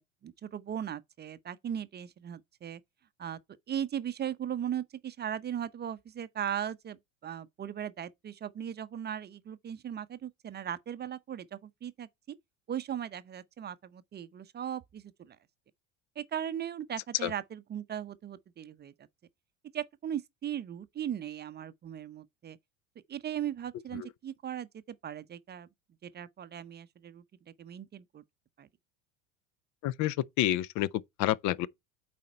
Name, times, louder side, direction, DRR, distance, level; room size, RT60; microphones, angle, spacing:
voice 1, 0.0-2.8 3.2-3.4 3.7-12.1 12.7-15.4 16.2-18.9 19.7-22.6 23.1-25.7 26.0-27.2 27.6-28.2 28.6-28.7, right 9 dB, 25° right, 0.6 m, -38 dB
voice 2, 29.8-30.9 31.2-31.7, left 14 dB, 50° left, 0.5 m, -29 dB
8.4 x 4.2 x 4.3 m
hypercardioid pair, 80°, 39 cm